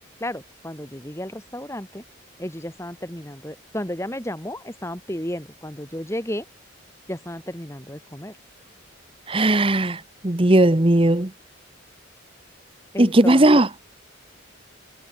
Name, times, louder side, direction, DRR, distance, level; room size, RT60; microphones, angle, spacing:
voice 1, 0.2-2.0 2.4-6.5 7.1-8.4 12.9-13.6, left 1 dB, 15° left, 3.5 m, -33 dB
voice 2, 9.3-11.3 13.0-13.7, right 1 dB, 25° right, 1.0 m, -17 dB
head